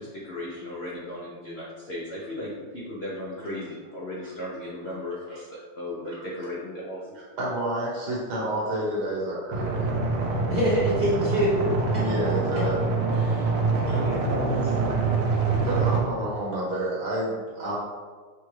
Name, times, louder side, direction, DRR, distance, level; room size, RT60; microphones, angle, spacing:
voice 1, 0.0-5.5 5.7-7.1, left 1 dB, 75° left, -5 dB, 0.5 m, -36 dB
voice 2, 7.1-9.9 12.0-12.8 13.8-13.9 15.5-17.8, right 1 dB, 65° right, -5 dB, 1.6 m, -30 dB
sound 1, 9.5-16.0, right 4 dB, 80° right, 1.3 m, -25 dB
voice 3, 10.5-12.0 13.2-13.5 13.9-14.8, equal, 45° right, -9 dB, 1.0 m, -26 dB
6.1 x 2.3 x 3.1 m, 1.5 s
omnidirectional pair, 2.0 m